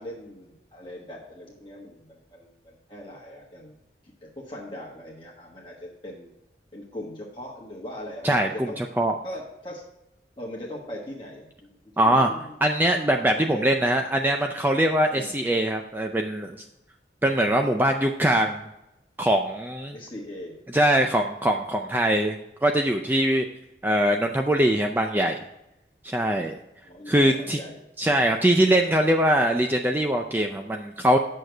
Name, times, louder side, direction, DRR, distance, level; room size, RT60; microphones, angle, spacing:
voice 1, 0.0-3.8 4.2-6.3 6.7-8.8 9.2-9.8 10.4-12.5 13.4-13.7 15.1-15.5 19.9-20.6 26.8-27.8, left 1 dB, 25° left, -3 dB, 1.3 m, -40 dB
voice 2, 8.2-9.1 12.0-12.3 12.6-16.6 17.2-18.6 19.2-20.0 20.7-22.4 22.6-23.5 23.8-25.4 26.0-26.6 27.1-27.6 28.0-31.2, right 1 dB, 10° right, 3 dB, 0.4 m, -22 dB
8.7 x 6.6 x 4.5 m, 0.89 s
head